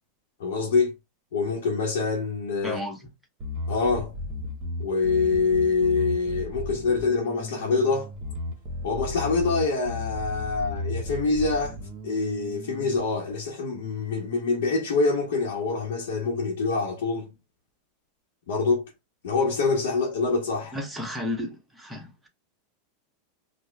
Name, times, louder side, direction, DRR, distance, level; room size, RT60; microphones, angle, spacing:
voice 1, 0.4-0.9 1.3-2.8 3.7-4.1 4.8-8.1 8.8-11.8 12.0-17.3 18.5-18.8 19.2-20.8, left 4 dB, 80° left, 0.9 m, -25 dB
voice 2, 2.6-3.1 20.7-22.3, left 1 dB, 5° right, 0.8 m, -33 dB
Bass guitar, 3.4-13.0, left 2 dB, 45° right, 0.9 m, -35 dB
4.9 x 2.1 x 2.2 m
supercardioid pair, 135°, 0 cm